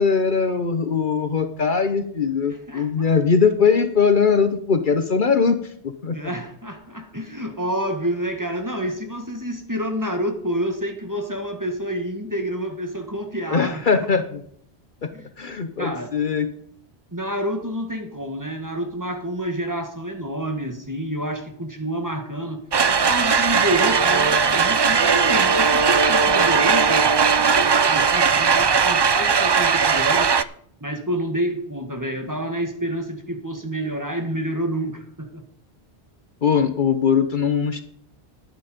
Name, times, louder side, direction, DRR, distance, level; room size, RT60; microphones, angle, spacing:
voice 1, 0.0-5.6 6.0-6.3 13.5-14.4 15.0-15.1 15.4-16.5 36.4-37.8, left 5 dB, 55° left, 9 dB, 1.0 m, -20 dB
voice 2, 2.5-3.1 6.1-14.1 15.1-15.3 15.8-16.1 17.1-30.3 30.8-35.4, equal, 20° right, 5 dB, 1.6 m, -28 dB
sound 1, 22.7-30.4, right 5 dB, 45° right, 0.3 m, -18 dB
10.5 x 9.3 x 5.2 m, 0.64 s
omnidirectional pair, 1.1 m